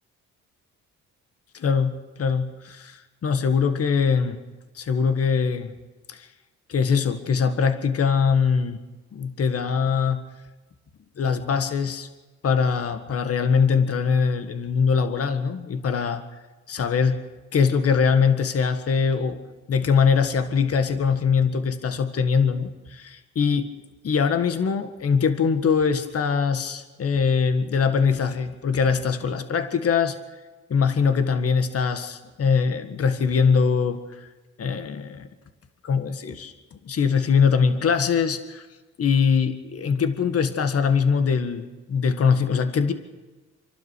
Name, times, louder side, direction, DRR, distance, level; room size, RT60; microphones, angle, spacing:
voice 1, 1.5-4.4 4.8-5.7 6.1-6.3 6.7-8.8 9.1-10.2 11.2-12.1 12.4-16.2 16.7-17.2 17.5-19.4 19.7-23.7 24.0-30.2 30.7-34.3 34.6-35.3 35.8-38.7 39.0-42.9, left 6 dB, 50° left, 9 dB, 1.8 m, -22 dB
27.5 x 12.0 x 8.4 m, 1.2 s
cardioid pair, 90°, 30 cm